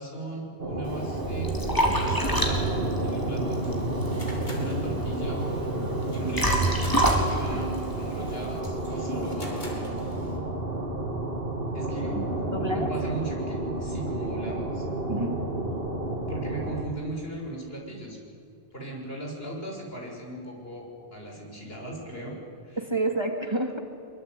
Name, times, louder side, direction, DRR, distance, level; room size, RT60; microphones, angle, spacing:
voice 1, 0.0-1.6 1.9-2.6 3.0-3.6 4.5-5.4 6.1-7.0 7.2-10.0 11.7-12.2 12.7-14.9 16.3-18.2 18.7-22.4 22.6-22.9, right 1 dB, 70° left, -1 dB, 7.1 m, -37 dB
sound 1, 0.6-16.9, right 1 dB, 65° right, 3.1 m, -31 dB
Liquid, 0.8-8.6, right 1 dB, 20° left, 4.1 m, -28 dB
sound 2, 3.6-10.4, left 1 dB, 45° left, 4.9 m, -47 dB
voice 2, 12.1-12.9 15.1-15.4 22.8-23.8, right 2 dB, 25° right, 4 dB, 2.5 m, -29 dB
24.5 x 23.5 x 9.9 m, 2.5 s
omnidirectional pair, 1.0 m